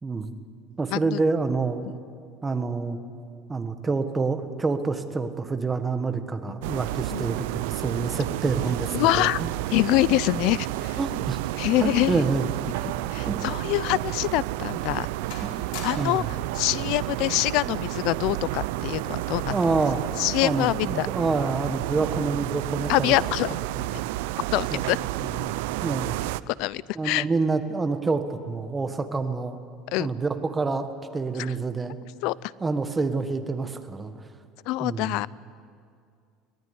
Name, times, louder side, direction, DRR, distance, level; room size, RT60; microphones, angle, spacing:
voice 1, 0.0-0.3 0.8-1.9 2.4-3.0 3.5-9.5 11.0-11.5 11.8-12.5 13.3-13.4 15.4-15.6 16.0-16.3 19.5-20.0 20.4-23.3 23.7-24.1 24.7-24.8 25.2-25.5 25.8-26.2 26.9-29.6 30.0-30.9 31.1-32.0 32.6-34.1 34.8-35.1, right 4 dB, 15° right, 7 dB, 1.5 m, -27 dB
voice 2, 0.9-1.2 7.1-7.3 8.9-9.4 9.7-11.0 11.6-12.2 13.1-15.4 15.8-16.2 16.5-19.5 20.2-21.1 22.9-23.5 23.9-24.0 24.5-25.0 26.5-27.3 29.9-30.1 31.4-31.5 32.2-32.5 34.7-35.3, left 18 dB, 65° left, 20 dB, 0.5 m, -25 dB
sound 1, 6.6-26.4, right 17 dB, 90° right, 0.5 m, -31 dB
sound 2, 11.9-13.1 13.4-13.6 14.2-14.3 14.8-15.1 15.3-16.4 17.3-17.6, left 6 dB, 85° left, 5.0 m, -44 dB
24.0 x 19.0 x 9.7 m, 2.3 s
cardioid pair, 150°, 0 cm